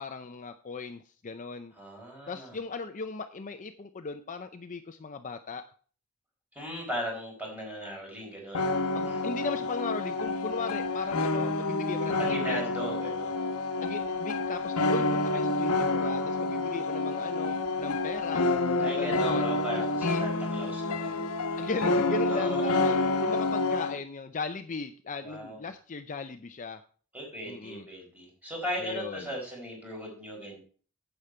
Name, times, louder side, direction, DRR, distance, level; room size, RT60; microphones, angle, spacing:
voice 1, 0.0-1.7 2.3-5.7 8.9-12.6 13.8-19.4 20.0-20.3 21.6-26.8 27.5-27.9 28.8-29.3, left 4 dB, 35° left, 8 dB, 0.6 m, -37 dB
voice 2, 1.7-2.6 6.5-8.7 9.1-9.2 12.2-13.5 18.8-21.4 22.3-23.0 25.2-25.7 27.1-30.6, equal, 5° right, -2 dB, 4.4 m, -37 dB
sound 1, 8.5-24.0, left 2 dB, 80° left, 1.1 m, -28 dB
8.7 x 8.2 x 4.4 m, 0.41 s
head